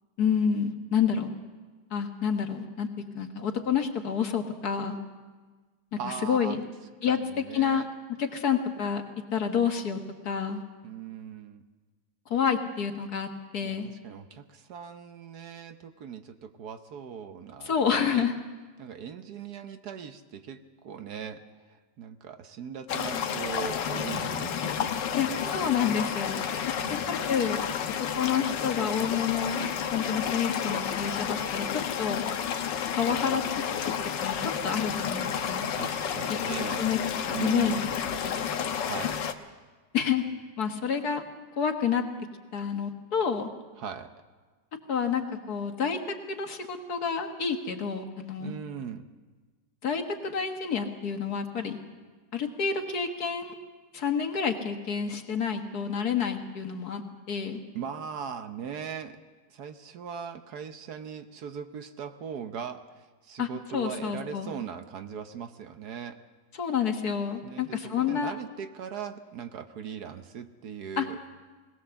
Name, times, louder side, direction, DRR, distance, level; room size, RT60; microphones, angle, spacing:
voice 1, 0.2-1.3 1.9-2.9 3.1-5.0 5.9-6.6 7.0-7.9 8.2-9.0 9.3-10.6 12.3-13.9 17.6-18.3 25.2-26.4 27.1-27.7 28.0-29.6 29.9-32.2 32.9-33.6 34.2-35.7 36.3-36.4 36.8-37.0 37.3-37.8 38.2-38.3 39.9-40.2 40.6-41.2 41.6-42.1 42.5-43.5 44.9-48.5 49.8-51.8 52.3-53.6 53.9-57.0 57.3-57.6 63.4-64.5 66.5-68.3 71.0-71.3, left 7 dB, 60° left, 5 dB, 1.9 m, -29 dB
voice 2, 6.0-6.6 7.1-7.9 10.8-11.6 13.6-18.3 18.8-21.4 21.7-25.4 26.8-27.1 35.8-36.8 37.2-38.0 38.8-39.2 43.8-44.1 48.4-49.1 57.7-59.2 59.5-66.2 67.4-71.2, right 7 dB, 65° right, 8 dB, 1.3 m, -39 dB
sound 1, 22.9-39.3, left 8 dB, 80° left, 1.6 m, -31 dB
21.0 x 18.0 x 7.0 m, 1.4 s
omnidirectional pair, 1.9 m